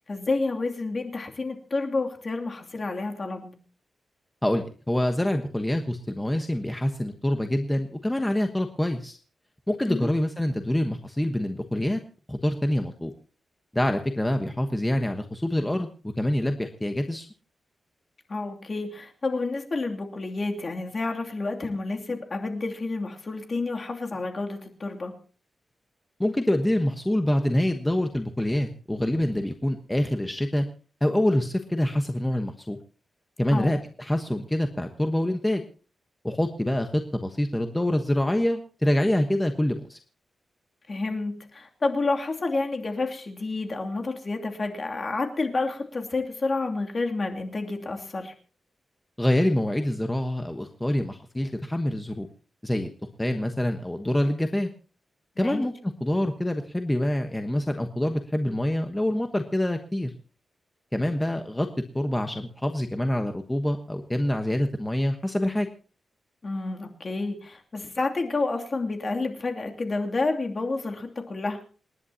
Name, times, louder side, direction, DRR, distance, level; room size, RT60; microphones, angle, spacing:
voice 1, 0.1-3.5 9.9-10.2 18.3-25.1 33.5-33.8 40.9-48.3 55.4-55.6 66.4-71.7, left 3 dB, 40° left, 3 dB, 2.7 m, -29 dB
voice 2, 4.4-9.2 9.7-12.0 12.3-13.1 13.7-17.3 26.2-30.6 31.0-32.8 33.4-35.6 36.2-40.0 49.2-52.3 52.6-52.9 53.2-54.7 55.4-55.7 56.0-60.1 60.9-61.7 61.9-65.7, left 1 dB, 10° left, 5 dB, 1.2 m, -26 dB
28.0 x 10.5 x 2.9 m, 0.39 s
wide cardioid pair, 115°, 0 cm